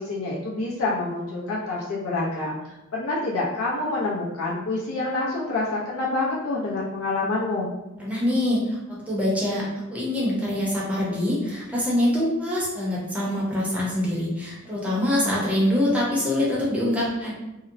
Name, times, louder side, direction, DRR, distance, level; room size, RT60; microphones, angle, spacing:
voice 1, 0.0-7.7, left 2 dB, 70° left, -5 dB, 0.6 m, -27 dB
voice 2, 8.0-8.6 8.9-9.6 9.9-17.3, left 1 dB, 5° right, -6 dB, 0.6 m, -24 dB
2.8 x 2.0 x 2.5 m, 0.99 s
head